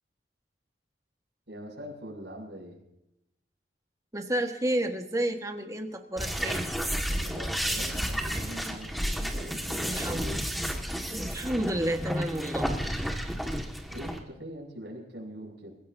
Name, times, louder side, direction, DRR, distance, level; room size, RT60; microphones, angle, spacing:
voice 1, 1.5-2.8 7.2-10.4 13.9-15.8, equal, 75° right, -2 dB, 7.3 m, -43 dB
voice 2, 4.1-6.7 9.8-10.3 11.1-12.7, right 1 dB, 20° right, 5 dB, 1.6 m, -31 dB
sound 1, 6.2-14.2, equal, ahead, 1.8 m, -31 dB
29.5 x 16.0 x 2.8 m, 0.86 s
head